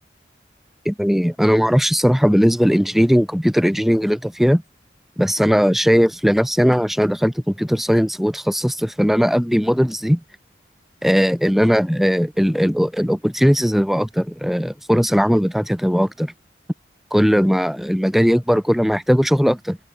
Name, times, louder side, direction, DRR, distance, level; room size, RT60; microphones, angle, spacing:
voice 1, 0.8-4.6 5.2-10.2 11.0-16.3 17.1-19.8, equal, ahead, 1.4 m, -18 dB
head